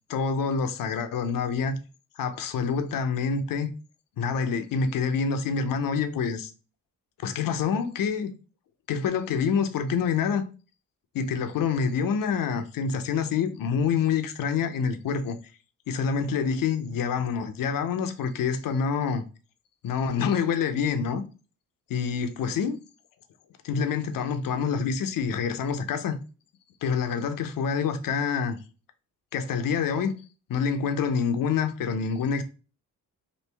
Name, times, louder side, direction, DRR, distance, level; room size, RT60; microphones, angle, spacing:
voice 1, 0.1-1.8 2.2-3.7 4.2-6.5 7.2-8.3 8.9-10.4 11.1-15.4 15.9-19.2 19.8-21.2 21.9-22.8 23.6-26.2 26.8-28.6 29.3-30.1 30.5-32.4, left 6 dB, 70° left, 0.6 m, -27 dB
3.1 x 2.5 x 3.3 m
cardioid pair, 65°, 34 cm